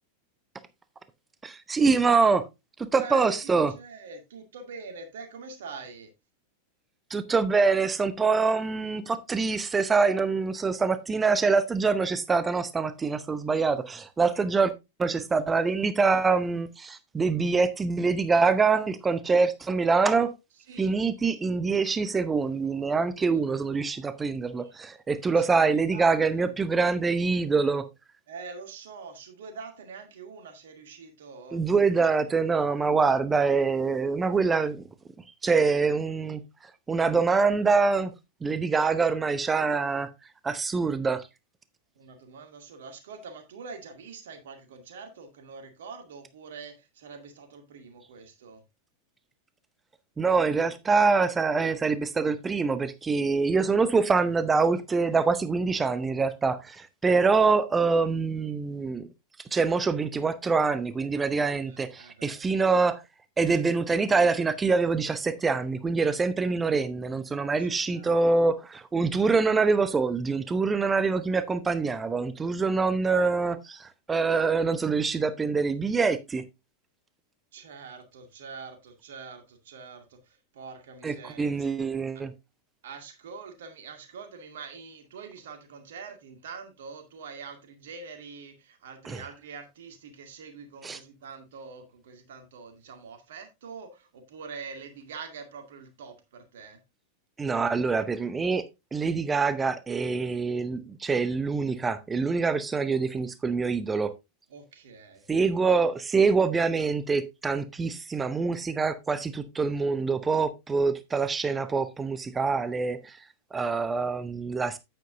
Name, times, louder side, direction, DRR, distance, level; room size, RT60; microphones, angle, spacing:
voice 1, 1.4-2.5 2.9-3.7 7.1-14.7 15.0-20.3 20.8-27.9 31.5-34.8 35.4-36.4 36.9-38.1 38.4-40.1 40.4-41.2 50.2-59.1 59.5-63.0 63.4-76.4 81.0-82.3 89.0-89.2 90.8-91.0 97.4-98.6 98.9-104.1 105.3-113.2 113.5-114.8, right 4 dB, 15° right, 0.7 m, -25 dB
voice 2, 2.9-6.1 20.7-21.0 23.3-24.7 25.4-26.5 28.3-31.6 42.0-48.6 61.7-62.5 67.6-68.1 77.5-81.7 82.8-96.8 104.5-105.6, right 5 dB, 60° right, 2.1 m, -45 dB
9.3 x 9.0 x 2.6 m
figure-of-eight pair, 90°, 0 cm